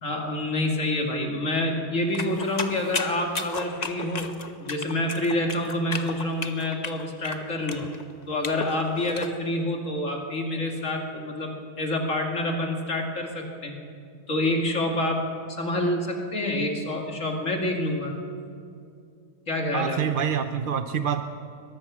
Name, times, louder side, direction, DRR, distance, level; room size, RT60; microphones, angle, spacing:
voice 1, 0.0-4.3 4.6-7.8 8.3-13.7 14.3-15.3 15.6-18.1 19.5-20.0, left 1 dB, 50° left, 2 dB, 2.6 m, -27 dB
sound 1, 2.1-9.3, left 4 dB, 30° left, 1.0 m, -34 dB
voice 2, 19.7-21.2, right 8 dB, 50° right, 8 dB, 0.6 m, -26 dB
22.0 x 21.5 x 6.2 m, 2.5 s
omnidirectional pair, 1.7 m